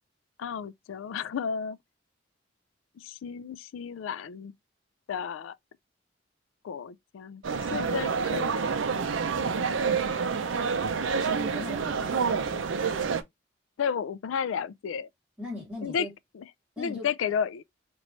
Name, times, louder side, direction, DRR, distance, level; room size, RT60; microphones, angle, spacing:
voice 1, 0.4-1.8 3.0-4.5 5.1-5.6 6.6-7.4 7.7-8.5 13.8-15.1 15.8-16.1 16.3-16.4 16.8-17.6, left 7 dB, 90° left, 0.3 m, -32 dB
sound 1, 7.4-13.2, right 5 dB, 80° right, 0.5 m, -28 dB
voice 2, 9.8-10.1 11.1-12.6 15.4-16.1 16.8-17.1, left 1 dB, 5° right, 2.6 m, -39 dB
4.4 x 3.0 x 2.6 m
head